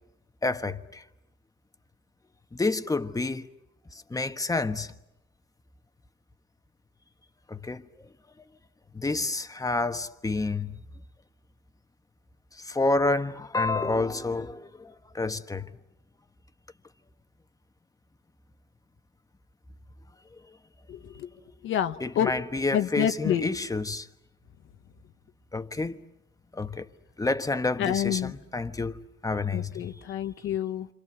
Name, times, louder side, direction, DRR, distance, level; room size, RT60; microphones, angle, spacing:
voice 1, 0.4-1.0 2.6-3.5 4.1-4.9 7.5-7.8 8.9-10.8 12.6-15.7 22.0-24.1 25.5-26.0 26.5-26.9 27.2-30.0, left 3 dB, 15° left, 1.3 m, -29 dB
voice 2, 20.9-21.3 21.6-22.3 22.7-23.5 27.8-28.3 29.5-30.9, left 10 dB, 80° left, 1.2 m, -28 dB
28.0 x 26.5 x 7.9 m
cardioid pair, 90°, 20 cm